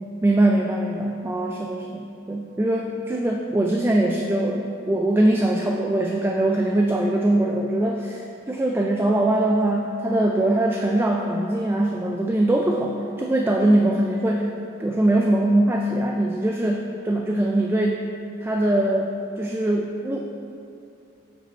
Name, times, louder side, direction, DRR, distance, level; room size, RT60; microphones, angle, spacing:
voice 1, 0.2-14.5 14.8-18.1 18.4-19.1 19.4-20.2, right 1 dB, 10° right, 1 dB, 0.3 m, -22 dB
8.7 x 5.0 x 4.3 m, 2.6 s
head